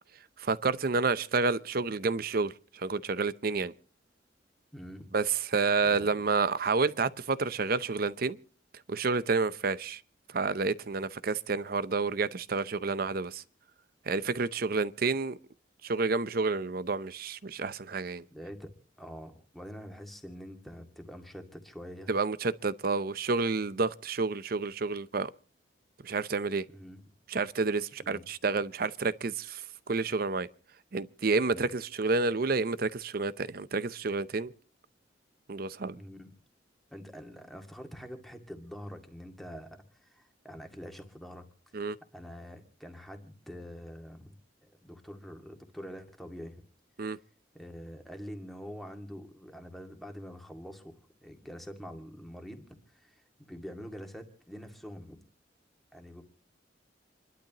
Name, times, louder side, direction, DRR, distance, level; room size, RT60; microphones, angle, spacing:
voice 1, 0.4-3.7 5.1-8.4 8.9-10.0 10.3-13.4 14.1-15.4 15.8-18.2 22.1-25.3 26.0-26.6 27.3-30.5 30.9-34.5 35.5-36.0 41.7-42.0 47.0-47.2, right 4 dB, 55° right, 0.7 m, -29 dB
voice 2, 4.7-5.1 5.8-6.2 18.3-18.7 19.0-22.1 26.7-27.0 28.0-28.2 31.4-31.7 35.9-36.3 36.9-41.5 42.1-44.3 44.6-46.6 47.5-55.2 55.9-56.2, equal, ahead, 2.0 m, -45 dB
28.0 x 12.0 x 2.9 m
head